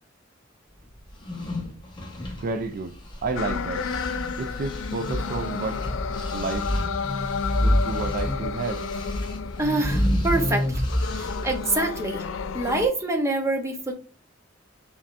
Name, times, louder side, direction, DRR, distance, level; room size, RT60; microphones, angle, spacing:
sound 1, 1.1-3.5 3.8-11.7, equal, 25° left, 1.0 m, -28 dB
voice 1, 2.4-3.9 4.4-5.8 6.3-6.7 7.6-9.2, right 3 dB, 45° right, 0.3 m, -31 dB
sound 2, 3.4-12.9, left 5 dB, 70° left, 0.4 m, -32 dB
voice 2, 9.6-10.8 11.1-12.3 12.5-13.9, right 2 dB, 15° right, 0.8 m, -26 dB
4.0 x 3.4 x 2.4 m
head